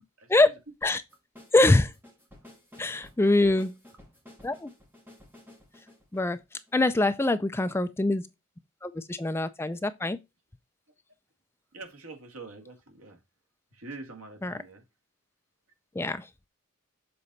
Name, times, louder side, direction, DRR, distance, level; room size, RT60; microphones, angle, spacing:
voice 1, 0.2-0.5 11.7-13.2 13.7-14.8, right 3 dB, 75° right, 2.1 m, -45 dB
sound 1, 0.8-7.1, left 1 dB, 10° right, 2.0 m, -53 dB
voice 2, 1.5-1.9 2.8-3.7 4.4-4.7 6.1-6.4 6.7-8.2 8.8-10.2 14.4-14.5 16.0-16.3, left 2 dB, 10° left, 0.4 m, -24 dB
6.9 x 4.2 x 4.0 m
head